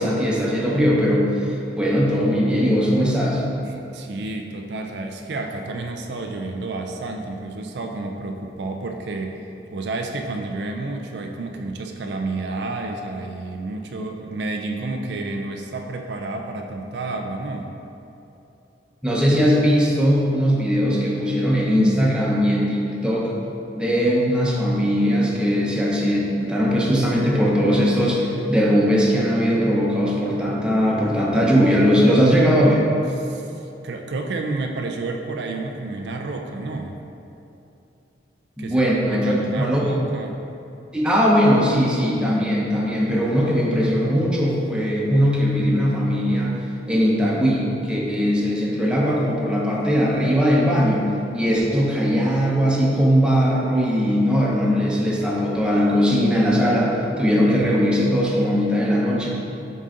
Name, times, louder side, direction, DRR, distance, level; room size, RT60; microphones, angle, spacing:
voice 1, 0.0-3.4 19.0-23.3 23.7-32.8 38.6-39.8 40.9-51.1 51.3-59.3, equal, 5° right, -4 dB, 0.8 m, -19 dB
voice 2, 3.6-9.4 9.7-17.7 33.2-37.0 38.6-40.4, right 2 dB, 65° right, 3 dB, 0.4 m, -30 dB
7.6 x 3.8 x 3.8 m, 2.8 s
head